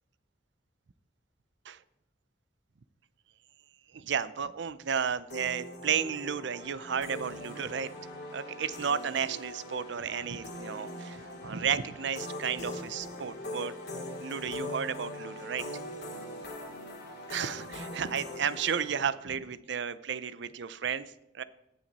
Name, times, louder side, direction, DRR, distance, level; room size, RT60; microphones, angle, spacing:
voice 1, 3.9-7.9 8.3-13.7 14.2-15.6 17.3-21.0 21.3-21.4, right 7 dB, 65° right, 16 dB, 0.5 m, -33 dB
sound 1, 5.3-19.0, left 1 dB, 60° left, 2.4 m, -41 dB
17.0 x 6.0 x 4.1 m, 0.87 s
head